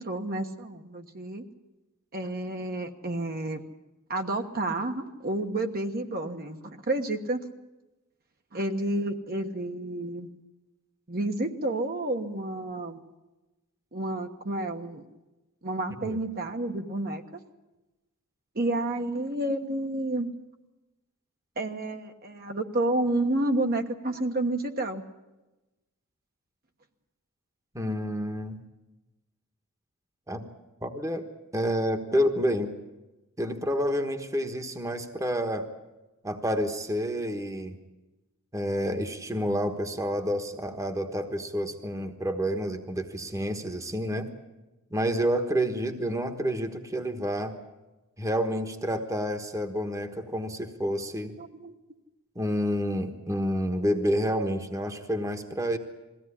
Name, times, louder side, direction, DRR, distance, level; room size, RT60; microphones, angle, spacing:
voice 1, 0.0-1.5 2.1-3.6 4.1-7.4 8.5-10.3 11.1-13.0 13.9-15.1 15.6-17.2 18.5-20.3 21.6-25.0 51.4-51.7, right 2 dB, 45° right, 4 dB, 1.3 m, -30 dB
voice 2, 27.7-28.6 30.3-30.5 30.8-31.3 31.5-32.7 33.4-35.7 36.2-37.7 38.5-44.3 44.9-47.6 48.2-51.3 52.3-55.8, equal, 15° right, 7 dB, 1.3 m, -29 dB
21.5 x 16.0 x 10.0 m, 1.1 s
head